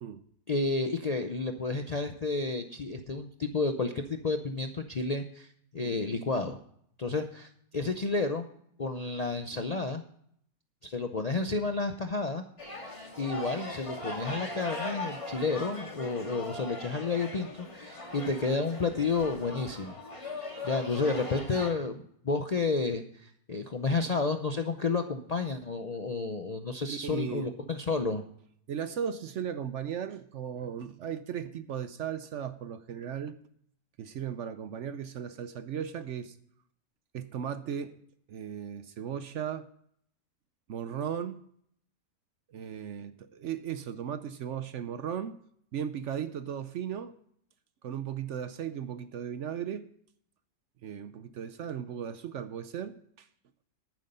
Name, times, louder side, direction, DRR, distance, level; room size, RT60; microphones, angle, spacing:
voice 1, 0.5-6.6 7.0-8.5 8.8-10.0 10.8-12.4 13.2-20.0 20.6-28.2, left 3 dB, 45° left, 0.5 m, -31 dB
sound 1, 12.6-21.7, left 2 dB, 20° left, 1.8 m, -40 dB
voice 2, 26.9-27.5 28.7-33.4 34.0-36.4 37.1-38.0 38.3-39.7 40.7-41.4 42.5-45.4 45.7-47.1 47.8-49.9 50.8-53.3, right 8 dB, 60° right, 0.8 m, -36 dB
11.0 x 9.5 x 5.4 m
omnidirectional pair, 1.6 m